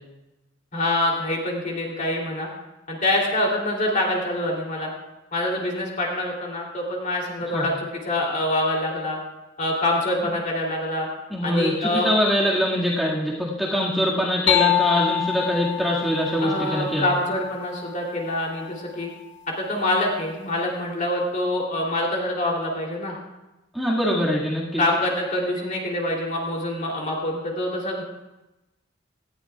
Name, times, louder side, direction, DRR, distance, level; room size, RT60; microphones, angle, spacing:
voice 1, 0.7-2.5 2.9-4.9 5.3-7.7 8.0-9.2 9.6-11.1 11.4-12.1 16.4-19.1 19.6-23.2 24.8-28.0, left 1 dB, 45° left, -1 dB, 3.1 m, -25 dB
voice 2, 11.3-17.1 23.7-24.8, equal, ahead, -6 dB, 2.0 m, -23 dB
sound 1, 14.5-18.2, left 11 dB, 65° left, 1.0 m, -26 dB
18.0 x 13.5 x 2.4 m, 0.99 s
head